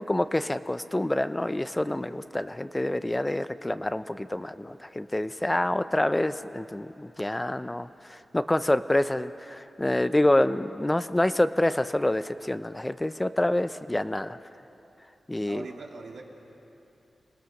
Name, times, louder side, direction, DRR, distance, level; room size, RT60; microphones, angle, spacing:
voice 1, 0.0-14.4 15.3-15.7, left 1 dB, 20° left, 12 dB, 0.7 m, -27 dB
voice 2, 15.5-16.2, right 4 dB, 80° right, -1 dB, 2.7 m, -41 dB
28.0 x 18.5 x 6.6 m, 3.0 s
cardioid pair, 40°, 0 cm